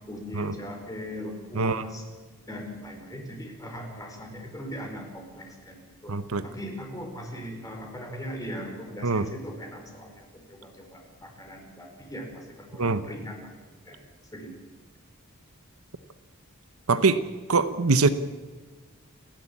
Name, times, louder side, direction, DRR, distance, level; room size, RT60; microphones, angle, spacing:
voice 1, 0.1-2.0 2.5-6.2 6.4-13.5 13.8-14.1 14.3-14.6, equal, 15° left, 2 dB, 4.7 m, -39 dB
voice 2, 6.1-6.4 9.0-9.3 12.8-13.0 16.9-17.2 17.5-18.1, right 4 dB, 70° right, 12 dB, 1.0 m, -23 dB
29.5 x 11.5 x 8.5 m, 1.4 s
head